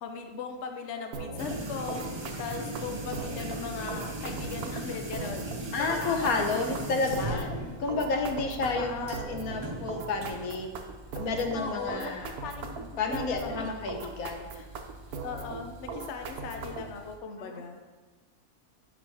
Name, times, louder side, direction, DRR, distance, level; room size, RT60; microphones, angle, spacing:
voice 1, 0.0-2.1 2.4-6.6 7.1-7.6 8.8-9.3 11.5-12.7 13.1-13.5 14.5-14.7 15.2-17.8, left 5 dB, 60° left, 5 dB, 0.9 m, -38 dB
sound 1, 1.1-17.0, right 4 dB, 80° right, 1.3 m, -40 dB
sound 2, 1.4-17.2, right 2 dB, 30° right, 0.5 m, -40 dB
voice 2, 5.7-7.5 7.8-10.7 11.1-12.3 13.0-14.5 17.4-17.6, left 3 dB, 75° left, 4 dB, 1.3 m, -30 dB
9.9 x 6.1 x 3.4 m, 1.2 s
omnidirectional pair, 1.6 m